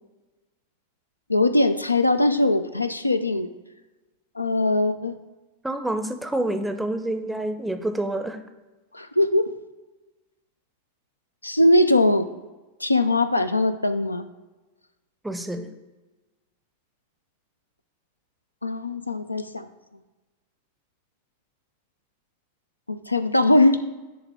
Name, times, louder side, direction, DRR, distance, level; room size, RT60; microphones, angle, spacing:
voice 1, 1.3-3.5 4.4-5.2 8.9-9.5 11.4-12.3 12.8-14.3 18.6-19.7 22.9-23.8, left 2 dB, 85° left, 9 dB, 0.4 m, -21 dB
voice 2, 5.6-8.4 15.2-15.7, right 1 dB, 5° right, 7 dB, 0.6 m, -28 dB
10.5 x 3.5 x 3.5 m, 1.1 s
figure-of-eight pair, 90°, 0 cm